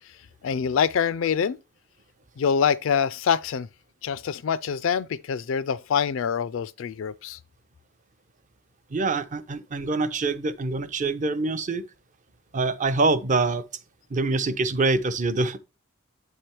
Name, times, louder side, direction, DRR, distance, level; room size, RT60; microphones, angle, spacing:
voice 1, 0.4-1.6 2.4-3.7 4.0-7.4, left 7 dB, 70° left, 0.4 m, -25 dB
voice 2, 8.9-11.8 12.5-13.6 14.1-15.6, right 3 dB, 40° right, 0.6 m, -25 dB
8.1 x 3.3 x 4.3 m
head